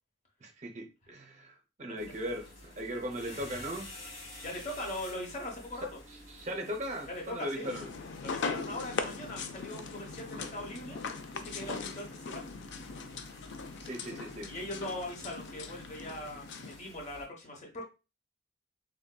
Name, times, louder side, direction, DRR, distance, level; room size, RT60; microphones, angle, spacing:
voice 1, 0.4-3.9 5.8-7.9 13.8-14.5, equal, 35° right, 3 dB, 0.6 m, -38 dB
sound 1, 2.0-17.2, left 1 dB, 80° left, 1.4 m, -51 dB
voice 2, 4.4-5.9 7.1-7.7 8.2-11.0 11.3-12.5 14.4-17.8, left 1 dB, 40° left, 0 dB, 0.9 m, -40 dB
sound 2, 7.6-16.8, left 4 dB, 65° left, 0.4 m, -40 dB
3.5 x 2.6 x 2.2 m, 0.30 s
head